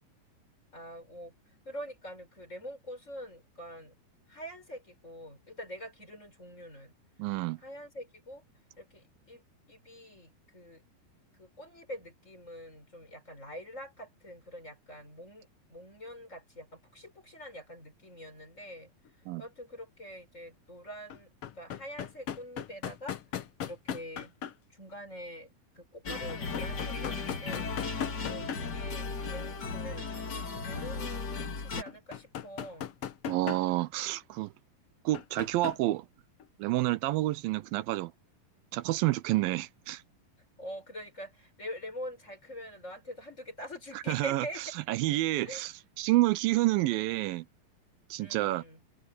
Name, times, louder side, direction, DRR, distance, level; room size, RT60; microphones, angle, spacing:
voice 1, 0.7-1.3 1.6-4.0 4.3-6.9 7.6-8.4 8.8-10.8 11.3-18.9 19.4-23.2 23.6-24.3 24.7-32.9 40.6-44.6 45.4-45.6 48.2-48.8, equal, 20° left, 6.8 m, -45 dB
voice 2, 7.2-7.6 19.3-19.4 33.3-34.5 35.1-36.1 36.6-38.1 38.7-40.0 44.1-44.5 44.9-47.5 48.1-48.6, right 17 dB, 80° right, 2.3 m, -29 dB
sound 1, 19.1-19.2 21.1-24.5 26.3-28.7 29.0-29.1 31.9-33.7 35.1-35.8 36.4-36.5, left 9 dB, 75° left, 1.3 m, -37 dB
sound 2, 26.0-31.8, left 4 dB, 35° left, 2.0 m, -36 dB
omnidirectional pair, 4.3 m